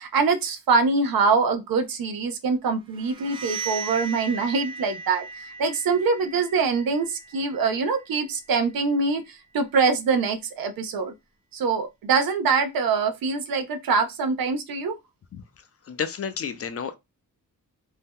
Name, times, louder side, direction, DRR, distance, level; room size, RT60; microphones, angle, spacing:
voice 1, 0.0-11.1 11.5-15.0, right 4 dB, 85° right, 0.6 m, -24 dB
sound 1, 2.9-8.6, right 4 dB, 15° right, 0.4 m, -38 dB
voice 2, 15.9-17.0, left 7 dB, 45° left, 0.4 m, -31 dB
2.7 x 2.2 x 3.5 m
wide cardioid pair, 140°, 34 cm